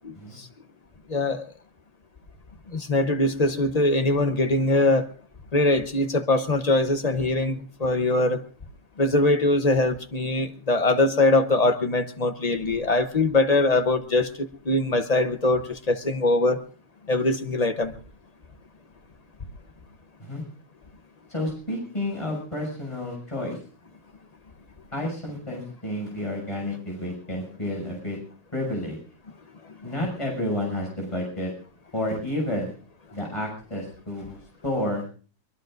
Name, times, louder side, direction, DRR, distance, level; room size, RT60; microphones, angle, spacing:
voice 1, 0.0-0.5 1.1-1.5 2.7-5.1 5.5-8.4 9.0-16.6 17.1-17.9, left 2 dB, 30° left, 8 dB, 0.7 m, -22 dB
voice 2, 21.3-23.6 24.9-28.2 28.5-29.0 29.8-31.5 31.9-32.7 33.1-34.4 34.6-35.0, left 1 dB, 15° left, -1 dB, 6.6 m, -30 dB
23.5 x 21.5 x 2.6 m, 0.40 s
omnidirectional pair, 1.9 m